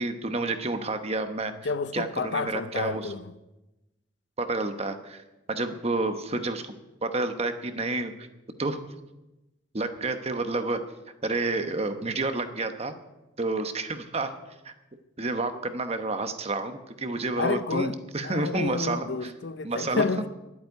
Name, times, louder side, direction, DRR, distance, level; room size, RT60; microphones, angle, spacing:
voice 1, 0.0-1.5 1.9-3.1 4.4-5.2 5.5-6.7 7.0-8.3 8.6-8.8 9.7-10.8 11.2-12.9 13.4-14.3 14.6-14.7 15.2-19.3 19.6-20.0, right 2 dB, 35° right, 1.1 m, -29 dB
voice 2, 1.6-3.3 17.4-18.0 18.2-20.3, left 4 dB, 65° left, 0.7 m, -30 dB
11.0 x 8.5 x 9.5 m
head